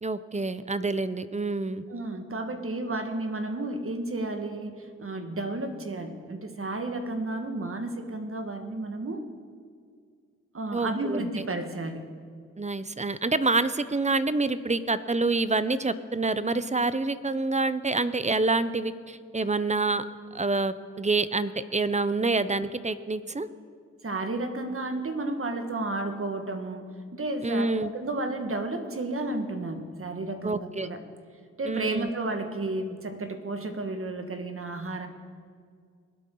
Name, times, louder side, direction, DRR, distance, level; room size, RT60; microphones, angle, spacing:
voice 1, 0.0-1.8 10.7-11.2 12.6-20.0 20.3-23.5 27.4-27.9 30.4-30.9 31.7-32.1, right 3 dB, 25° right, 14 dB, 0.7 m, -27 dB
voice 2, 1.9-9.3 10.5-12.1 24.0-31.0 31.6-35.1, right 2 dB, 45° right, 6 dB, 1.7 m, -32 dB
23.0 x 8.4 x 3.9 m, 2.1 s
cardioid pair, 45°, 31 cm